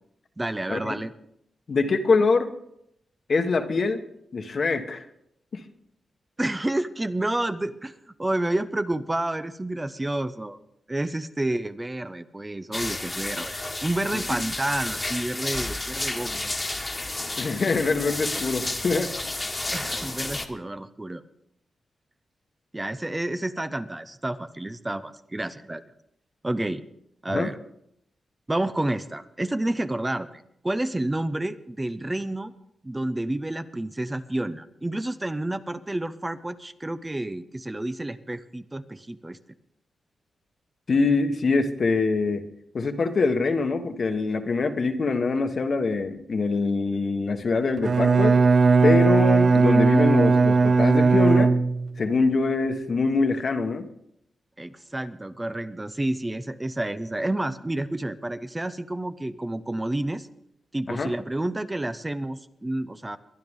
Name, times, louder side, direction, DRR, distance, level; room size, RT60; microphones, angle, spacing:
voice 1, 0.4-1.1 6.4-10.6 10.9-16.6 19.7-21.2 22.7-25.8 26.4-26.8 27.2-27.6 28.5-32.5 32.8-39.4 54.6-60.3 60.7-63.2, right 1 dB, 15° right, 11 dB, 0.6 m, -30 dB
voice 2, 1.7-2.5 3.3-4.0 4.3-5.0 5.5-5.6 14.1-14.2 17.4-19.1 27.3-27.5 40.9-42.4 42.7-48.4 48.8-51.5 52.0-53.9 60.9-61.1, left 4 dB, 55° left, 7 dB, 1.3 m, -24 dB
sound 1, 12.7-20.5, left 2 dB, 25° left, 1.5 m, -31 dB
Bowed string instrument, 47.8-52.0, right 4 dB, 50° right, 0.5 m, -18 dB
22.5 x 10.5 x 3.6 m, 0.75 s
cardioid pair, 85°, 0 cm